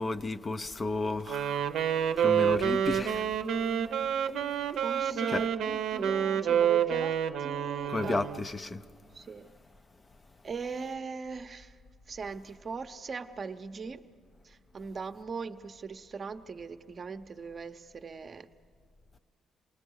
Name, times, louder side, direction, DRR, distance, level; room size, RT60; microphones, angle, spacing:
voice 1, 0.0-1.6 2.2-3.2 5.3-5.4 7.9-8.8, left 2 dB, 30° left, 0.5 m, -32 dB
Wind instrument woodwind instrument, 1.3-8.5, right 8 dB, 75° right, 0.7 m, -28 dB
voice 2, 4.8-7.1 7.4-8.4 9.1-9.5 10.4-11.8 12.1-14.0 14.4-18.5, right 5 dB, 40° right, 0.7 m, -40 dB
27.5 x 19.5 x 6.3 m
cardioid pair, 90°, 0 cm